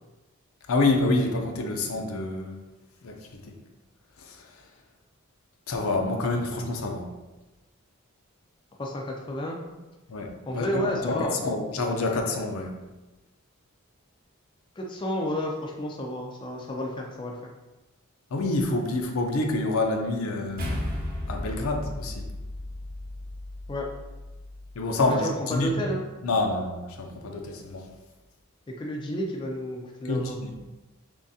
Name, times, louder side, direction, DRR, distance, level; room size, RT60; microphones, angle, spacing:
voice 1, 0.7-2.6 3.0-3.5 4.2-4.4 5.7-7.1 10.1-12.7 18.3-20.7 21.3-22.3 24.8-25.9 26.2-27.9 30.0-30.7, left 2 dB, 75° left, 3 dB, 0.5 m, -27 dB
voice 2, 8.8-9.6 10.5-11.5 14.8-17.4 23.7-23.9 25.0-26.0 28.7-30.4, equal, 20° left, 0 dB, 0.4 m, -31 dB
sound 1, 20.6-25.1, left 1 dB, 40° right, 0.9 m, -35 dB
3.6 x 3.1 x 2.7 m, 1.1 s
head